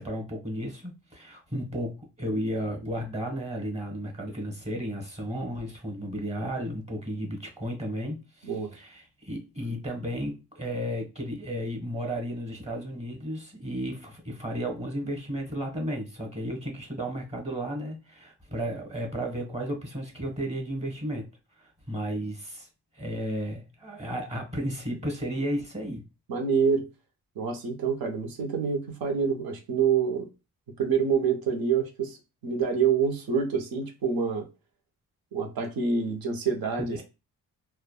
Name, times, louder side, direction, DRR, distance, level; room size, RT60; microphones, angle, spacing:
voice 1, 0.0-21.3 21.6-22.7 22.9-26.0 36.8-37.0, equal, 20° right, 1.1 m, -33 dB
voice 2, 26.3-26.9 27.4-30.3 30.8-34.5 35.3-37.0, right 6 dB, 75° right, 0.9 m, -27 dB
3.3 x 2.2 x 2.2 m
cardioid pair, 70°, 36 cm